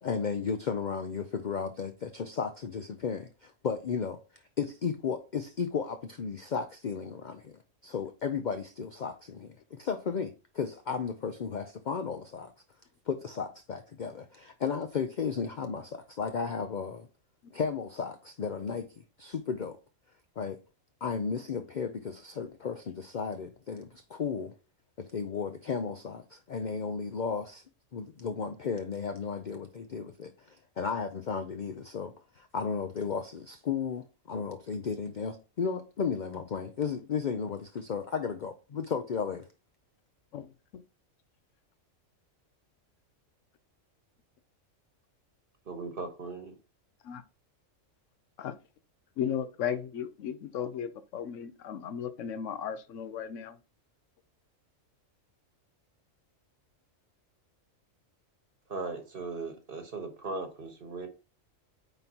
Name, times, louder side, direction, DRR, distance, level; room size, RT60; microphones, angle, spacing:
voice 1, 0.0-12.5 13.1-17.1 17.5-19.8 20.4-20.6 21.0-24.5 25.0-27.6 27.9-39.5, left 6 dB, 50° left, 0.5 m, -34 dB
voice 2, 45.6-46.5 58.7-61.1, right 3 dB, 45° right, 1.4 m, -38 dB
voice 3, 49.2-53.6, left 8 dB, 70° left, 1.0 m, -35 dB
8.9 x 3.9 x 2.9 m
omnidirectional pair, 1.4 m